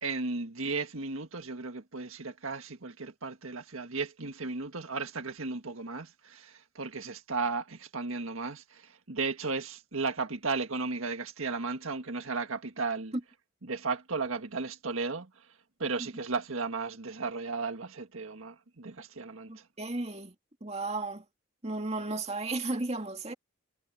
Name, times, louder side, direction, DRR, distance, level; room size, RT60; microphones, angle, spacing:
voice 1, 0.0-13.1 13.6-15.4 15.8-19.6, right 4 dB, 75° right, 1.7 m, -35 dB
voice 2, 19.5-20.3 20.6-21.2 21.6-23.3, right 2 dB, 30° right, 2.2 m, -34 dB
head